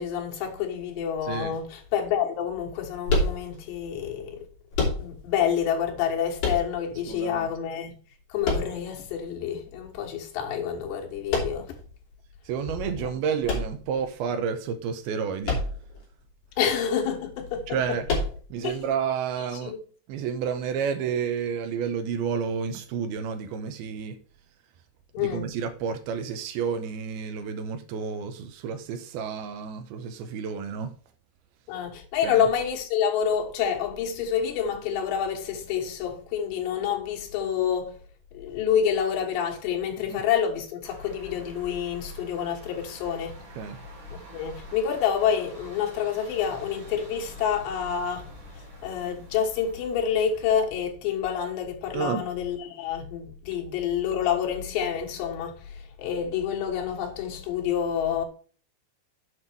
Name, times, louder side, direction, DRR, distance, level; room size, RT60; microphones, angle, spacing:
voice 1, 0.0-4.4 5.0-7.9 8.3-11.8 16.6-17.7 18.6-18.7 19.6-19.8 25.1-25.5 31.7-38.0 38.3-43.3 44.3-48.3 48.8-55.5 56.0-58.2, left 8 dB, 90° left, 3.7 m, -28 dB
voice 2, 1.2-1.6 7.1-7.5 12.5-15.6 17.7-18.1 18.5-19.8 20.1-24.2 25.2-30.9 32.2-32.5 40.1-40.2 43.6-43.8 51.9-52.2, right 6 dB, 75° right, 2.5 m, -30 dB
sound 1, 3.1-3.8 4.7-5.4 6.4-7.1 8.4-9.2 11.3-11.9 13.4-14.3 15.4-16.0 16.3-16.4 18.0-18.7, left 2 dB, 50° left, 3.9 m, -27 dB
sound 2, 40.8-50.5, right 3 dB, 50° right, 4.6 m, -48 dB
8.1 x 5.7 x 4.5 m
omnidirectional pair, 4.9 m